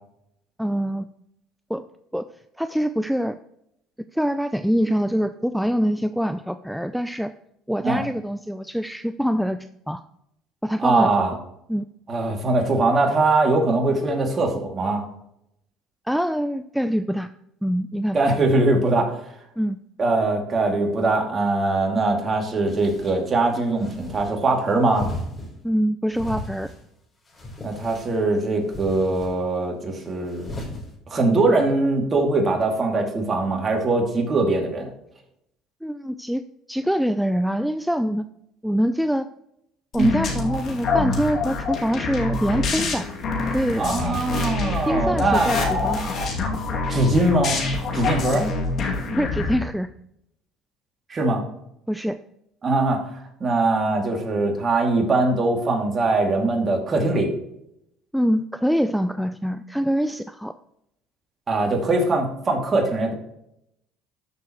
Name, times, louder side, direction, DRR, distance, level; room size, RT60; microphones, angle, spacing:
voice 1, 0.6-1.1 1.7-1.8 2.1-2.3 2.6-3.4 4.1-7.3 7.7-10.0 10.6-11.1 11.7-11.9 16.0-17.3 17.6-18.2 19.6-19.8 25.6-26.7 31.2-31.6 35.8-36.4 36.7-38.3 38.6-39.3 39.9-43.1 43.5-43.9 44.9-46.1 48.4-48.5 49.1-49.9 51.9-52.2 58.1-60.5, equal, ahead, 11 dB, 0.4 m, -24 dB
voice 2, 10.8-11.3 12.1-15.0 18.1-19.2 20.0-25.1 27.6-30.5 31.1-34.9 40.0-40.1 43.8-45.5 46.9-47.7 47.9-48.5 51.1-51.4 52.6-57.3 61.5-63.1, right 2 dB, 30° right, 1 dB, 2.5 m, -21 dB
sound 1, 22.7-23.2 23.7-24.3 24.9-25.5 26.1-26.8 27.3-28.2 28.7-29.3 30.3-30.8, left 1 dB, 30° left, 3.9 m, -35 dB
sound 2, 39.9-49.5, left 3 dB, 50° left, 2.5 m, -26 dB
13.5 x 6.7 x 3.1 m, 0.79 s
supercardioid pair, 85°, 0 cm